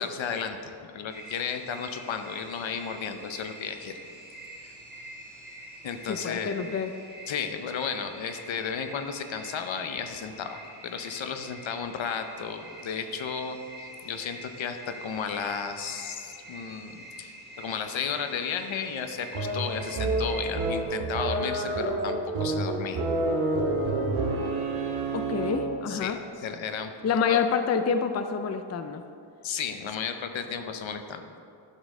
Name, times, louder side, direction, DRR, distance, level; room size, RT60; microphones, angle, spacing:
voice 1, 0.0-4.0 4.6-4.7 5.8-6.6 7.3-23.0 25.9-26.9 27.3-27.4 29.4-31.3, left 6 dB, 75° left, 7 dB, 0.7 m, -34 dB
sound 1, 1.1-20.8, right 1 dB, 20° right, 1.3 m, -46 dB
voice 2, 6.1-6.9 25.1-26.2 27.0-29.0, left 6 dB, 35° left, 8 dB, 0.4 m, -27 dB
sound 2, 19.3-25.8, right 2 dB, 90° right, 1.1 m, -28 dB
11.5 x 5.2 x 3.7 m, 2.4 s
wide cardioid pair, 115°, 46 cm